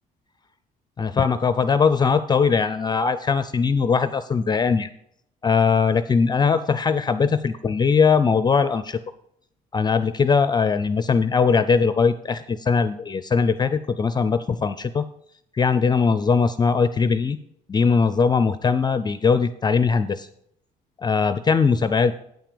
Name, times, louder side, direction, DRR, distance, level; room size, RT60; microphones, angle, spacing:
voice 1, 1.0-4.9 5.4-9.0 9.7-15.0 15.5-17.4 17.7-20.3 21.0-22.1, left 5 dB, 25° left, 12 dB, 0.5 m, -20 dB
8.9 x 5.9 x 6.8 m, 0.71 s
cardioid pair, 110°, 17 cm